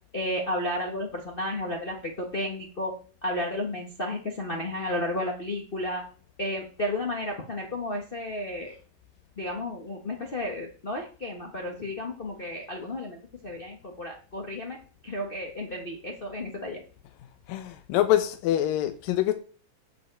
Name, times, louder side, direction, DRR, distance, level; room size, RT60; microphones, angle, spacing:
voice 1, 0.1-2.9 3.2-6.0 6.4-8.7 9.4-13.2 13.4-14.8 15.0-16.8, left 1 dB, 35° left, 0.9 m, -32 dB
voice 2, 17.5-19.3, left 12 dB, 85° left, 2.6 m, -25 dB
9.0 x 5.3 x 7.9 m
omnidirectional pair, 3.9 m